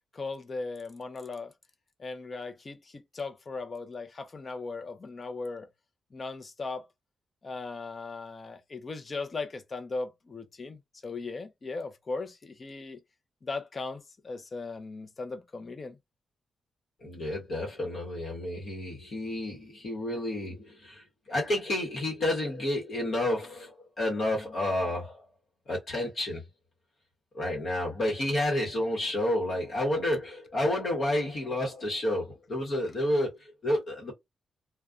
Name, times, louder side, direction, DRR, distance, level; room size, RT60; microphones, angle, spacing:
voice 1, 0.1-1.5 2.0-5.7 6.1-6.8 7.4-13.0 13.4-16.0, left 3 dB, 30° left, 0.5 m, -38 dB
voice 2, 17.0-25.2 25.7-26.4 27.3-34.1, left 1 dB, 50° left, 1.1 m, -30 dB
2.4 x 2.2 x 2.4 m
wide cardioid pair, 135°, 0 cm